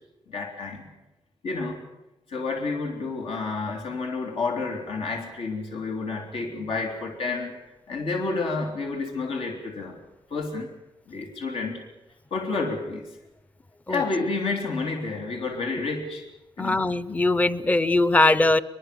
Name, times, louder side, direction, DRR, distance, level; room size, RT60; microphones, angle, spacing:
voice 1, 0.3-0.8 1.4-1.8 2.3-7.5 7.9-10.0 10.3-10.7 11.1-11.8 12.3-13.1 13.9-16.3 16.6-16.8, left 3 dB, 80° left, 2 dB, 3.6 m, -30 dB
voice 2, 16.6-18.6, left 2 dB, 15° left, 17 dB, 0.7 m, -21 dB
22.5 x 22.0 x 7.0 m, 0.96 s
wide cardioid pair, 155°, 9 cm